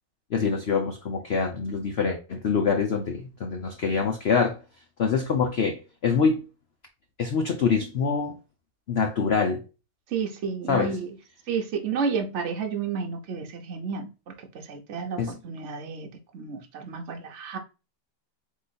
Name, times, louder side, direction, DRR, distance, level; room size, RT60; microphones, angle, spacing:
voice 1, 0.3-4.6 5.0-6.4 7.2-8.4 8.9-9.6 10.7-11.0 15.2-15.3, left 5 dB, 65° left, 0.6 m, -25 dB
voice 2, 10.1-11.1 11.5-17.6, right 5 dB, 55° right, 0.9 m, -31 dB
3.9 x 3.1 x 4.0 m
omnidirectional pair, 1.9 m